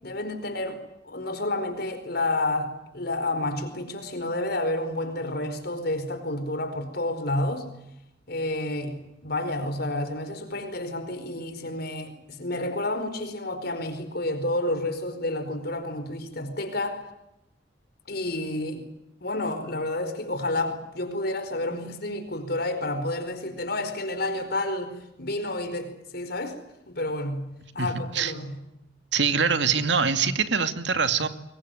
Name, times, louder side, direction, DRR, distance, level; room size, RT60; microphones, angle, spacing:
voice 1, 0.0-7.7 8.3-17.0 18.1-18.9 19.2-26.6 26.9-28.6, left 1 dB, 55° left, 4.7 m, -30 dB
voice 2, 29.1-31.3, right 5 dB, 70° right, 2.3 m, -23 dB
26.0 x 22.5 x 9.2 m
head